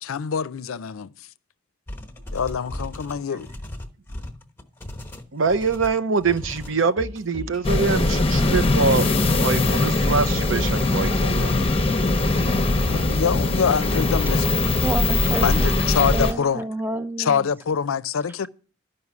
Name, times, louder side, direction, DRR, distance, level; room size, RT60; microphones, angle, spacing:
voice 1, 0.0-1.3 2.3-3.5 12.9-14.7 15.4-16.7 17.2-18.5, left 6 dB, 85° left, 0.5 m, -25 dB
sound 1, 1.9-6.8 7.8-8.1, left 1 dB, 10° left, 1.1 m, -37 dB
voice 2, 5.3-9.1 9.4-11.5, right 4 dB, 70° right, 0.7 m, -24 dB
sound 2, 6.6-7.6 7.9-8.5 9.0-9.1 9.6-10.6 10.9-11.5 12.0-12.1 12.6-13.6 13.9-14.5 14.9-15.0, left 1 dB, 35° right, 1.2 m, -39 dB
sound 3, 7.6-16.3, left 2 dB, 30° left, 0.7 m, -21 dB
voice 3, 14.8-15.7 16.1-17.5, right 2 dB, 10° right, 0.5 m, -29 dB
12.5 x 5.5 x 8.2 m
head